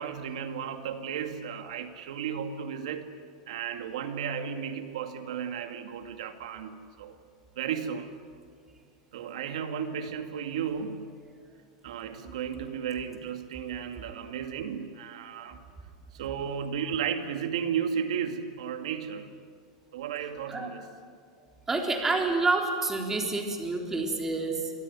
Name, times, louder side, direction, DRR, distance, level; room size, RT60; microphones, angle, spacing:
voice 1, 0.0-3.1 3.5-7.2 7.6-8.2 9.1-11.1 11.8-15.6 16.1-19.3 19.9-20.9, right 7 dB, 85° right, 7 dB, 2.1 m, -34 dB
voice 2, 21.7-24.7, right 3 dB, 10° right, 2 dB, 3.8 m, -28 dB
26.0 x 22.0 x 9.7 m, 2.1 s
supercardioid pair, 150°, 3 cm